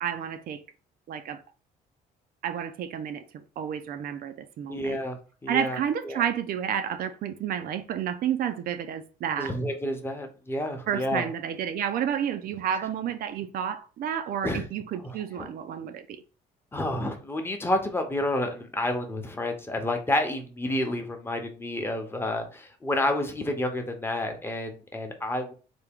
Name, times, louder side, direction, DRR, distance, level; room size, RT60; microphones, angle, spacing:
voice 1, 0.0-0.6 1.1-1.4 2.4-5.0 5.5-9.5 10.9-16.2, right 9 dB, 65° right, 0.5 m, -30 dB
voice 2, 4.7-5.8 6.1-6.2 9.4-11.2 14.4-14.6 15.4-15.5 16.7-25.5, left 1 dB, 15° left, 0.8 m, -29 dB
3.4 x 2.2 x 3.6 m
cardioid pair, 90°, 17 cm